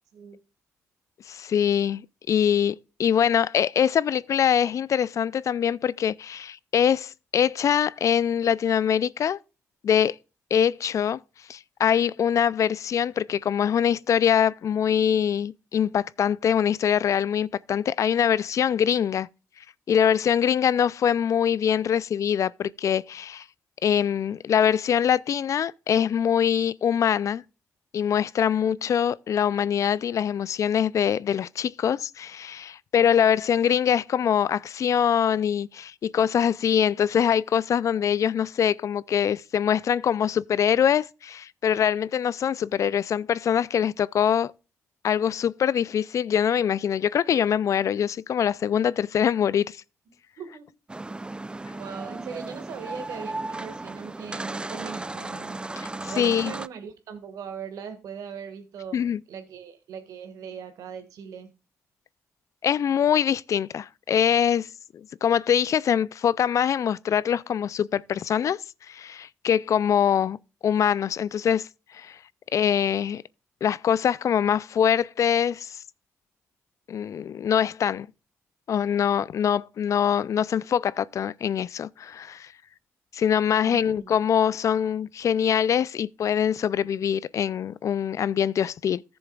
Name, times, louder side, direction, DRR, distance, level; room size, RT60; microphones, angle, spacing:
voice 1, 1.3-2.0 2.3-9.4 9.8-10.2 10.5-11.2 11.5-19.3 19.9-23.4 23.8-27.4 27.9-44.5 45.0-49.8 55.8-56.5 58.9-59.2 62.6-64.7 65.2-68.6 68.9-70.4 70.6-71.7 71.9-72.2 72.5-73.2 73.6-75.8 76.9-78.1 78.7-82.5 83.1-89.0, left 8 dB, 65° left, 0.4 m, -23 dB
voice 2, 50.4-50.7 51.7-55.6 56.1-61.5 83.6-84.1, right 7 dB, 85° right, 1.8 m, -40 dB
sound 1, 50.9-56.7, right 2 dB, 15° right, 0.4 m, -35 dB
14.5 x 7.0 x 2.4 m
cardioid pair, 65°, 6 cm